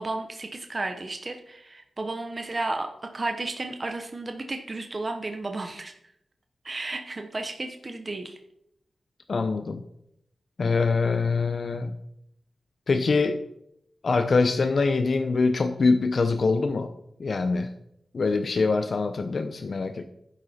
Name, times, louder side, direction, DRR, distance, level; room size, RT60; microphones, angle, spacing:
voice 1, 0.0-6.1 6.6-8.4, right 2 dB, 30° right, 5 dB, 0.9 m, -33 dB
voice 2, 9.3-9.8 10.6-11.9 12.9-13.4 14.0-16.9 17.2-17.7 18.1-20.0, left 4 dB, 50° left, 8 dB, 0.7 m, -24 dB
11.5 x 10.0 x 4.3 m, 0.76 s
wide cardioid pair, 175°, 0 cm